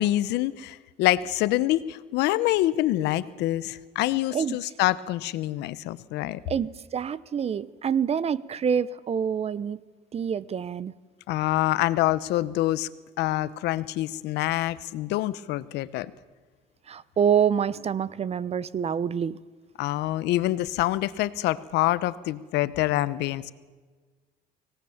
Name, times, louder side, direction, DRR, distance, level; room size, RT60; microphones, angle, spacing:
voice 1, 0.0-6.4 11.3-12.9 13.2-16.1 19.8-23.5, left 15 dB, 85° left, 17 dB, 0.9 m, -26 dB
voice 2, 6.5-9.8 10.1-10.9 16.9-19.4, right 7 dB, 40° right, 19 dB, 0.8 m, -26 dB
25.0 x 18.5 x 7.2 m, 1.4 s
cardioid pair, 110°, 17 cm